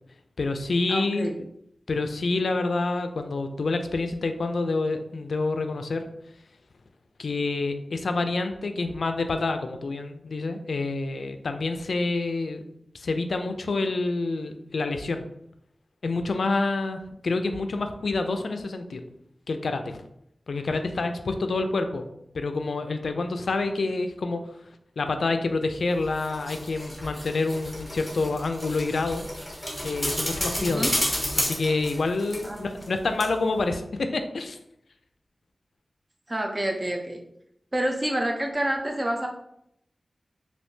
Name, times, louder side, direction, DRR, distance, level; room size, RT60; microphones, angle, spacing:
voice 1, 0.4-1.3 1.9-6.1 7.2-12.6 12.9-15.2 16.0-19.0 19.5-20.0 20.5-24.4 25.0-29.3 29.8-30.9 31.4-34.6, left 3 dB, 85° left, 7 dB, 0.3 m, -27 dB
voice 2, 0.9-1.3 30.6-30.9 32.4-32.6 36.3-37.2 37.7-39.3, right 1 dB, 25° right, 2 dB, 0.5 m, -28 dB
sound 1, 25.9-32.9 33.2-33.3, equal, 10° left, 1.0 m, -31 dB
3.5 x 2.7 x 2.7 m, 0.75 s
wide cardioid pair, 100°, 0 cm